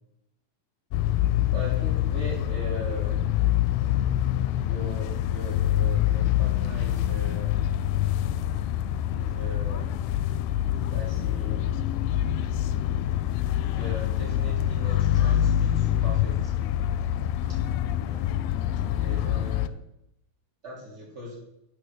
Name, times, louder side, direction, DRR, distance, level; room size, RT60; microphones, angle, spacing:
sound 1, 0.9-19.7, left 11 dB, 80° left, 2.4 m, -25 dB
voice 1, 1.5-3.1 4.6-7.6 9.1-9.9 10.8-11.6 13.8-16.5 18.0-18.3 18.9-19.7 20.6-21.4, equal, 20° right, -3 dB, 3.1 m, -39 dB
10.5 x 6.3 x 6.4 m, 0.79 s
omnidirectional pair, 4.6 m